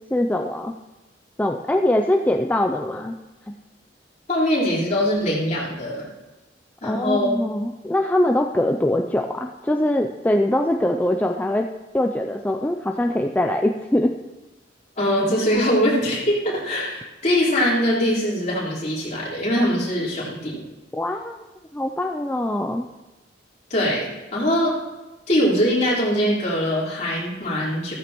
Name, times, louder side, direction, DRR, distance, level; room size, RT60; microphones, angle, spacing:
voice 1, 0.1-0.7 1.4-3.1 3.5-3.6 6.8-11.7 11.9-14.1 20.9-21.4 21.7-22.9, left 1 dB, 10° left, 3 dB, 0.4 m, -22 dB
voice 2, 4.3-6.0 6.8-7.3 15.0-20.6 23.7-24.8 25.3-27.9, equal, 40° left, -7 dB, 4.2 m, -22 dB
15.5 x 13.5 x 3.0 m, 1.1 s
head